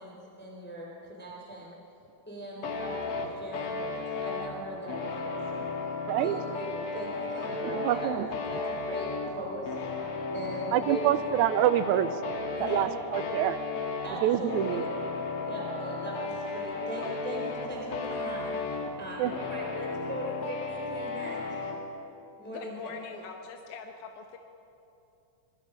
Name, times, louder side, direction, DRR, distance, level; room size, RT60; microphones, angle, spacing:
voice 1, 0.0-1.7 2.3-5.7 6.2-8.1 8.5-9.8 10.3-11.2 12.5-13.2 14.0-14.9 15.5-18.5 19.0-21.7 22.4-22.9, right 1 dB, 5° left, -3 dB, 3.8 m, -39 dB
sound 1, 2.6-21.8, left 3 dB, 50° left, 2.4 m, -35 dB
voice 2, 7.6-8.3 10.7-12.4 12.6-13.6 14.2-14.8 19.2-19.3, right 12 dB, 75° right, 13 dB, 2.0 m, -26 dB
voice 3, 22.5-24.4, left 5 dB, 80° left, 3 dB, 2.5 m, -42 dB
27.0 x 21.0 x 5.1 m, 2.8 s
omnidirectional pair, 3.6 m